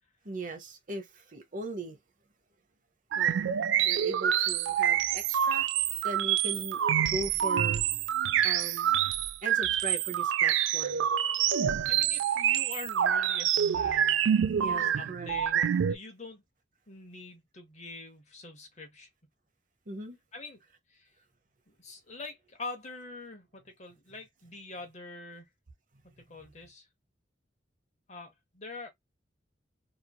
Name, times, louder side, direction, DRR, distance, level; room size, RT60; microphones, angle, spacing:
voice 1, 0.2-2.0 3.2-3.6 3.8-5.7 6.0-7.8 8.4-8.9 9.4-11.1 14.5-15.7 19.9-20.2, right 2 dB, 45° right, 0.7 m, -39 dB
sound 1, 3.1-16.0, right 9 dB, 90° right, 0.3 m, -27 dB
voice 2, 11.9-14.2 14.7-16.4 16.9-19.1 20.3-20.6 20.9-21.1 21.7-25.5 26.3-26.9 28.1-28.9, left 3 dB, 40° left, 0.9 m, -44 dB
3.0 x 2.5 x 2.2 m
head